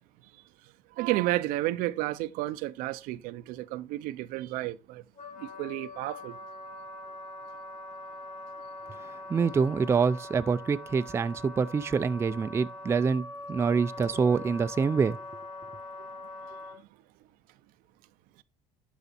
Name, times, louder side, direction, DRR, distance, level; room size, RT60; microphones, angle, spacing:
voice 1, 1.0-5.0 5.4-6.3, right 16 dB, 80° right, 0.7 m, -31 dB
Wind instrument woodwind instrument, 5.2-16.8, left 2 dB, 60° left, 3.1 m, -43 dB
voice 2, 9.3-15.2, right 5 dB, 20° right, 0.4 m, -26 dB
12.0 x 4.0 x 4.2 m
cardioid pair, 135°, 14 cm